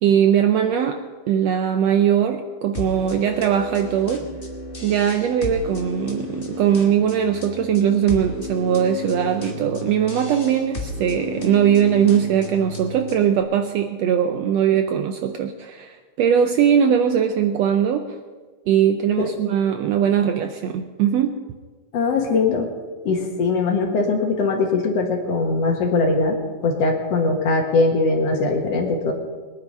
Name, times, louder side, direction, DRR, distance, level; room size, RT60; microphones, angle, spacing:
voice 1, 0.0-1.0 1.3-4.2 4.8-18.2 18.7-21.3, right 9 dB, 75° right, 6 dB, 1.6 m, -20 dB
sound 1, 2.7-13.4, left 2 dB, 25° left, 1.2 m, -33 dB
voice 2, 21.9-22.7 23.0-26.4 26.6-29.1, left 3 dB, 60° left, 2 dB, 2.5 m, -21 dB
21.5 x 9.8 x 5.4 m, 1.4 s
omnidirectional pair, 3.5 m